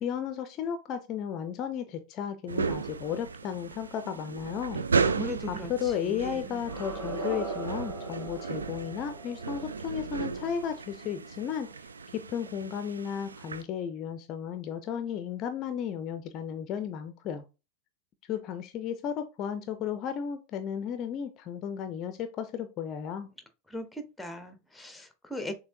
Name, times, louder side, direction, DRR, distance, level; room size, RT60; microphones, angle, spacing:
voice 1, 0.0-4.8 5.5-11.7 12.1-17.4 18.3-23.3, left 8 dB, 35° left, 10 dB, 0.5 m, -34 dB
sound 1, 2.5-13.6, right 5 dB, 75° right, 0.3 m, -35 dB
voice 2, 5.0-6.6 23.7-25.5, equal, 5° left, 8 dB, 0.8 m, -39 dB
sound 2, 6.6-11.5, right 3 dB, 55° right, 2.7 m, -40 dB
6.6 x 2.8 x 2.7 m, 0.29 s
figure-of-eight pair, 90°, 0 cm